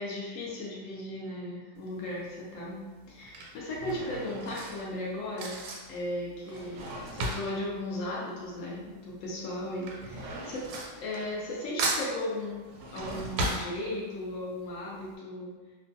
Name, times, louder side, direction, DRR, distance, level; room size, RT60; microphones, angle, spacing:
voice 1, 0.0-2.8 3.1-5.6 5.9-6.9 7.1-10.6 10.9-12.7 12.9-15.5, left 1 dB, 85° left, -4 dB, 0.7 m, -36 dB
Drawer open or close / Cutlery silverware, 1.8-2.2 3.0-8.9 9.2-11.5 11.8-14.3 14.7-14.8 15.0-15.1, right 2 dB, 80° right, 1.2 m, -36 dB
3.0 x 2.2 x 2.6 m, 1.3 s
omnidirectional pair, 2.0 m